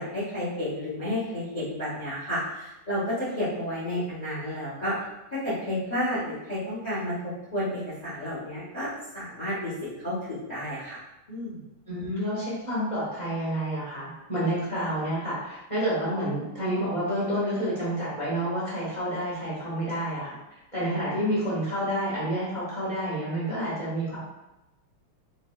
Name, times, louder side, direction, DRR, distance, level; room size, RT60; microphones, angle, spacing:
voice 1, 0.0-4.9 5.3-9.7 10.0-11.0 11.3-11.6, left 1 dB, 75° left, -10 dB, 0.3 m, -31 dB
voice 2, 11.9-20.4 20.7-24.2, equal, 20° left, -10 dB, 0.9 m, -29 dB
4.6 x 2.1 x 2.3 m, 0.94 s
omnidirectional pair, 2.4 m